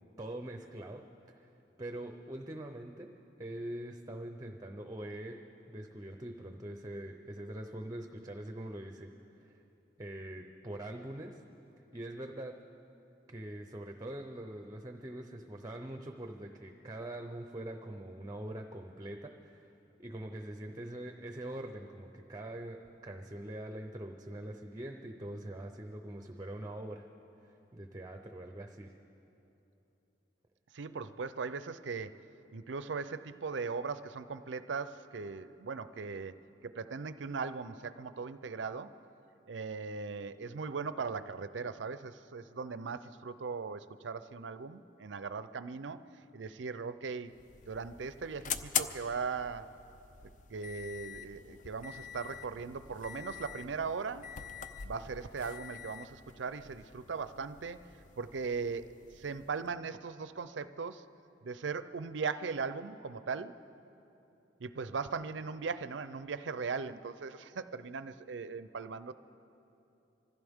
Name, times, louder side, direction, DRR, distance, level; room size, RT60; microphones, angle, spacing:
voice 1, 0.2-1.5 1.8-5.4 5.7-9.6 10.0-11.4 11.9-12.6 13.3-19.7 20.0-27.1 27.4-28.9, right 1 dB, 20° right, 5 dB, 0.7 m, -43 dB
voice 2, 30.7-32.2 32.5-38.9 39.5-46.0 46.3-47.3 47.6-49.7 50.2-54.3 54.8-57.8 58.2-61.0 61.4-63.6 64.6-69.1, right 5 dB, 85° right, 13 dB, 0.5 m, -39 dB
sound 1, 47.3-59.7, left 7 dB, 45° left, 0.5 m, -44 dB
25.0 x 15.0 x 3.6 m, 3.0 s
head